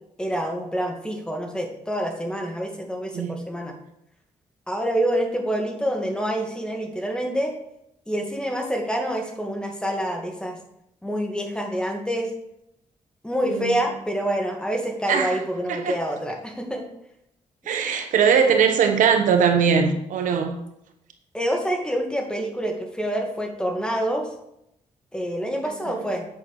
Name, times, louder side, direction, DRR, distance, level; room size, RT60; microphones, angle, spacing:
voice 1, 0.2-3.8 4.7-7.5 8.1-10.6 11.0-12.3 13.2-16.9 21.3-24.3 25.1-26.3, equal, 5° left, 2.2 m, -27 dB
voice 2, 13.4-13.8 15.1-15.4 15.7-16.0 17.7-20.6 25.9-26.0, right 6 dB, 85° right, 1.1 m, -20 dB
8.8 x 6.0 x 6.4 m
cardioid pair, 85°, 13 cm